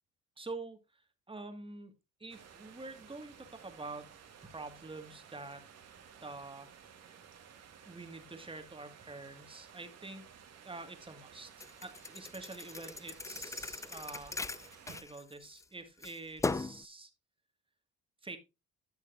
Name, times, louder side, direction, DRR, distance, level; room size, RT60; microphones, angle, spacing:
voice 1, 0.4-1.0 1.3-1.9 2.2-4.1 4.4-5.7 6.2-6.7 7.9-10.2 10.6-14.4 14.9-17.1 18.2-18.4, right 3 dB, 15° right, 7 dB, 1.8 m, -46 dB
sound 1, 2.3-15.0, right 7 dB, 55° right, 1.8 m, -56 dB
Thump thud, 11.6-15.6 16.0-16.8, left 3 dB, 10° left, 0.3 m, -39 dB
11.5 x 6.3 x 2.5 m, 0.25 s
supercardioid pair, 80°, 31 cm